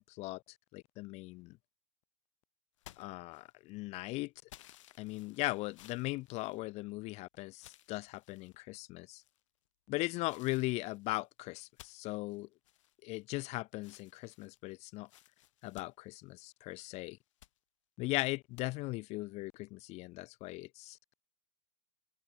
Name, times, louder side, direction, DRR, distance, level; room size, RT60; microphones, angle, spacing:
voice 1, 0.0-1.6 3.0-4.3 5.0-9.2 9.9-12.5 13.0-15.1 15.6-17.2 18.0-21.0, left 21 dB, 40° left, 0.8 m, -39 dB
sound 1, 2.8-3.8 4.5-7.1 7.5-8.6 9.2-9.7 10.3-13.4 13.8-16.8 17.2-17.6 18.6-18.7, left 14 dB, 70° left, 1.5 m, -59 dB
hypercardioid pair, 105°, 17 cm